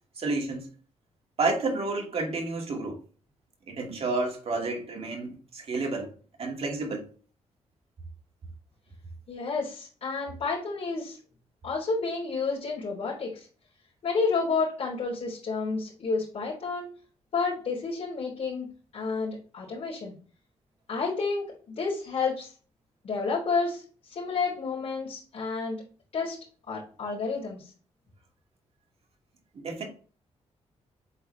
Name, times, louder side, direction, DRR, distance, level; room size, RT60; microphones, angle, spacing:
voice 1, 0.2-0.7 1.4-3.0 3.7-6.1 6.4-7.0 29.5-29.9, right 3 dB, 55° right, 2.3 m, -30 dB
voice 2, 9.3-11.2 11.6-13.5 14.0-16.9 17.3-18.7 18.9-20.1 20.9-22.5 23.0-25.8 26.1-26.4 26.7-27.7, left 4 dB, 70° left, 3.5 m, -30 dB
8.2 x 4.2 x 3.3 m
cardioid pair, 90°, 12 cm